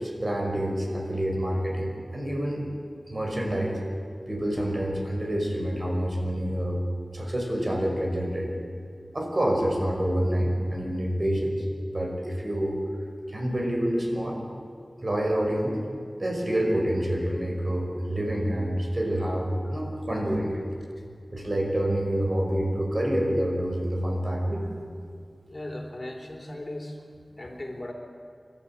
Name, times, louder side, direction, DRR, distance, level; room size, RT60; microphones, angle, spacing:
voice 1, 0.0-2.7 3.1-3.8 4.3-6.8 7.1-8.5 9.1-11.7 11.9-12.8 13.3-14.4 15.0-15.8 16.2-20.6 21.3-24.7, right 1 dB, 50° right, 0 dB, 5.5 m, -27 dB
voice 2, 25.4-27.0 27.4-27.9, left 1 dB, 45° left, 2 dB, 3.4 m, -38 dB
29.5 x 12.5 x 8.6 m, 2.3 s
wide cardioid pair, 45°, 0 cm